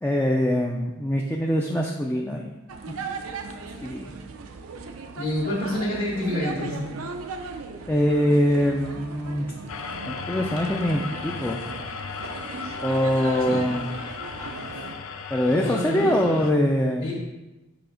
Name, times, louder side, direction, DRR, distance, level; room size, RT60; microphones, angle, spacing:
voice 1, 0.0-2.5 3.8-4.0 7.9-9.5 10.1-11.6 12.8-14.0 15.3-17.1, equal, 10° left, 0 dB, 0.4 m, -23 dB
sound 1, 2.7-15.0, right 4 dB, 80° right, 0.6 m, -38 dB
voice 2, 5.1-6.9 13.5-13.6 15.5-16.4 17.0-17.1, left 1 dB, 60° left, -7 dB, 1.6 m, -28 dB
sound 2, 9.7-16.5, left 5 dB, 80° left, 0.5 m, -36 dB
6.8 x 3.5 x 5.0 m, 1.0 s
head